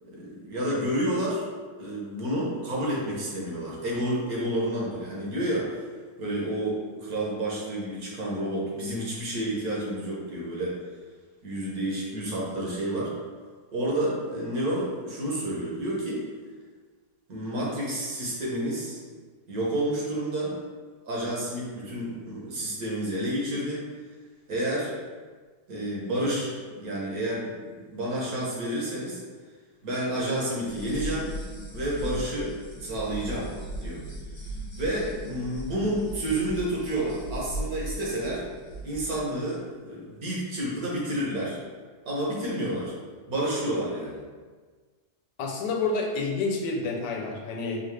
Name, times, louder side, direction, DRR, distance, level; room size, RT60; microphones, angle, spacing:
voice 1, 0.0-1.4 1.8-5.7 6.2-10.8 11.4-13.1 13.7-16.3 17.3-19.0 19.5-20.5 21.1-23.8 24.5-25.0 25.7-29.2 29.8-31.3 31.7-33.5 33.8-34.0 34.8-38.4 38.8-41.6 42.0-42.9 43.3-44.2, right 1 dB, 60° right, -5 dB, 1.5 m, -30 dB
sound 1, 30.6-39.2, right 1 dB, 30° left, 1.0 m, -38 dB
voice 2, 45.4-47.8, left 3 dB, 90° left, 0 dB, 1.3 m, -29 dB
4.8 x 2.6 x 3.2 m, 1.5 s
omnidirectional pair, 1.8 m